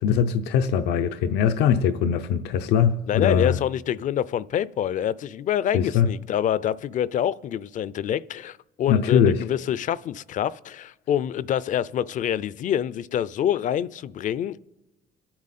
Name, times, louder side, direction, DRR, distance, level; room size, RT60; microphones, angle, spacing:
voice 1, 0.0-3.6 5.7-6.1 8.9-9.4, left 8 dB, 90° left, 0.6 m, -21 dB
voice 2, 3.1-14.6, left 10 dB, 50° left, 0.4 m, -26 dB
26.0 x 8.7 x 4.2 m
cardioid pair, 110°, 17 cm